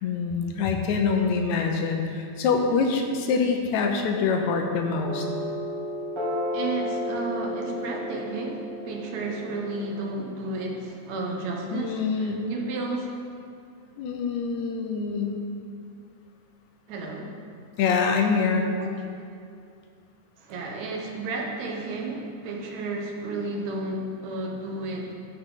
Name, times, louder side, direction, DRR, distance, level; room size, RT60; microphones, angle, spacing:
voice 1, 0.0-5.3 11.7-12.5 14.0-15.4 17.8-18.7, left 5 dB, 75° left, 3 dB, 2.0 m, -25 dB
sound 1, 5.0-10.1, left 1 dB, 45° right, 3.2 m, -32 dB
voice 2, 6.5-13.2 16.9-17.4 17.8-17.9 18.8-18.9 20.4-25.1, right 2 dB, 75° right, 0 dB, 2.3 m, -32 dB
13.0 x 6.1 x 3.8 m, 2.4 s
omnidirectional pair, 3.4 m